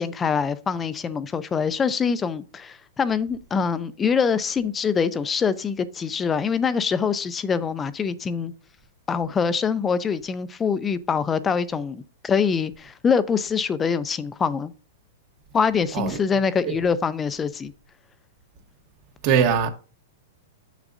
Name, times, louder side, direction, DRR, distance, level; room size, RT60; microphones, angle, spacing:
voice 1, 0.0-8.5 9.1-14.7 15.5-17.7, left 6 dB, 15° left, 0.3 m, -24 dB
voice 2, 19.2-19.7, right 7 dB, 40° right, 1.0 m, -21 dB
7.5 x 6.0 x 2.5 m
supercardioid pair, 160°, 0 cm